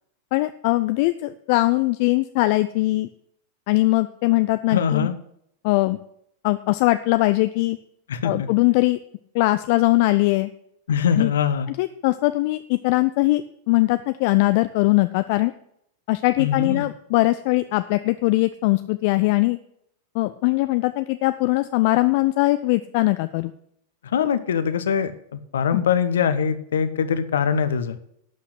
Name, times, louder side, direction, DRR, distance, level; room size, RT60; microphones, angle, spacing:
voice 1, 0.3-3.1 3.7-5.1 5.6-6.0 6.4-7.8 8.2-9.0 9.3-10.5 11.2-11.3 11.7-15.5 16.1-19.6 20.1-23.5 24.2-24.3 25.7-25.9, left 20 dB, 45° left, 12 dB, 0.4 m, -21 dB
voice 2, 4.7-5.1 8.1-8.5 10.9-11.7 16.4-16.9 24.0-28.0, left 7 dB, 65° left, 12 dB, 1.0 m, -23 dB
12.0 x 5.8 x 8.1 m, 0.72 s
figure-of-eight pair, 90°, 0 cm